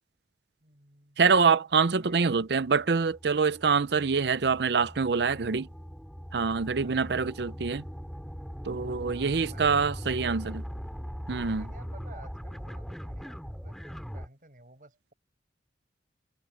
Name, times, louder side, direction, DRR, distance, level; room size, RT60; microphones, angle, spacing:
voice 1, 0.6-1.2 1.9-2.3 5.3-5.6 6.8-7.3 9.1-10.6 11.4-15.1, right 2 dB, 50° right, 5.3 m, -54 dB
voice 2, 1.2-5.6 6.3-7.8 8.6-10.6 11.3-11.6, right 5 dB, 65° right, 0.6 m, -25 dB
sound 1, 2.0-14.3, equal, ahead, 2.5 m, -41 dB
head